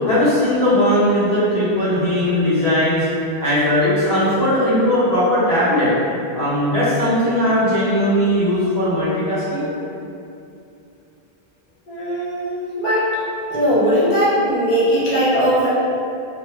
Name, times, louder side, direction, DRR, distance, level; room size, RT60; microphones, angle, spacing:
voice 1, 0.0-3.1 3.4-5.9 6.3-9.6, left 1 dB, 90° left, -11 dB, 1.2 m, -18 dB
voice 2, 11.9-13.1 13.5-15.7, equal, 55° left, -11 dB, 0.9 m, -19 dB
2.6 x 2.3 x 2.2 m, 2.6 s
omnidirectional pair, 1.0 m